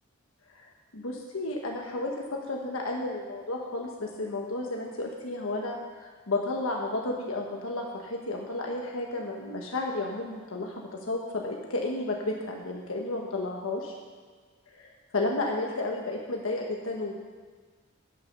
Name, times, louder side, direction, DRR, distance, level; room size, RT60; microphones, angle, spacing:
voice 1, 0.9-13.9 14.7-14.9 15.1-17.1, left 2 dB, 85° left, 0 dB, 1.2 m, -32 dB
10.5 x 6.9 x 6.6 m, 1.5 s
head